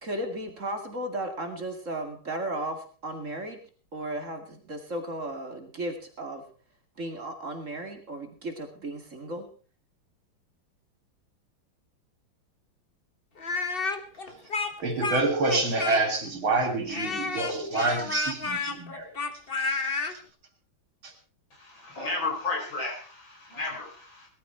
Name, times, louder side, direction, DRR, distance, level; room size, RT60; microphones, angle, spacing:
voice 1, 0.0-3.6 3.9-6.4 7.0-9.5, right 1 dB, 40° right, 4 dB, 2.5 m, -35 dB
Speech, 13.4-16.3 16.9-20.1, left 3 dB, 30° left, 1.3 m, -30 dB
voice 2, 14.8-19.1, right 3 dB, 85° right, 4 dB, 4.2 m, -27 dB
voice 3, 21.6-24.3, left 3 dB, 70° left, 0 dB, 5.5 m, -33 dB
19.0 x 12.5 x 4.4 m, 0.40 s
omnidirectional pair, 2.2 m